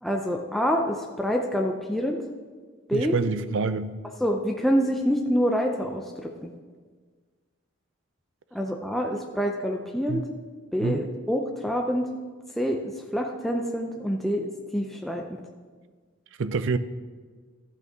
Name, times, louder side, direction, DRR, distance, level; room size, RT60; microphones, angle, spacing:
voice 1, 0.0-2.2 2.9-3.2 4.2-6.5 8.5-10.2 10.7-12.1 12.6-15.4, equal, ahead, 1 dB, 0.5 m, -26 dB
voice 2, 2.9-3.9 10.1-10.2 10.8-11.0 16.4-16.8, right 4 dB, 65° right, 13 dB, 0.5 m, -26 dB
12.0 x 8.1 x 3.6 m, 1.5 s
head